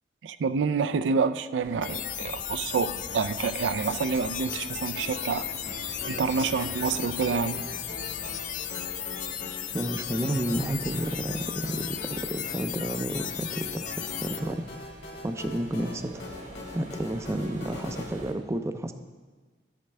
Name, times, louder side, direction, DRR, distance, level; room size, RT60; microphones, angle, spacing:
voice 1, 0.2-5.5 6.0-7.6, right 5 dB, 85° right, 13 dB, 0.4 m, -28 dB
sound 1, 1.6-18.3, right 1 dB, 40° right, 1.0 m, -46 dB
sound 2, 1.8-14.4, left 11 dB, 45° left, 0.4 m, -35 dB
sound 3, 3.1-18.1, left 2 dB, 65° left, 1.8 m, -43 dB
voice 2, 9.7-12.0 12.3-14.6 15.2-16.3 16.7-18.9, right 1 dB, 15° right, 8 dB, 0.4 m, -31 dB
12.0 x 8.4 x 3.3 m, 1.4 s
head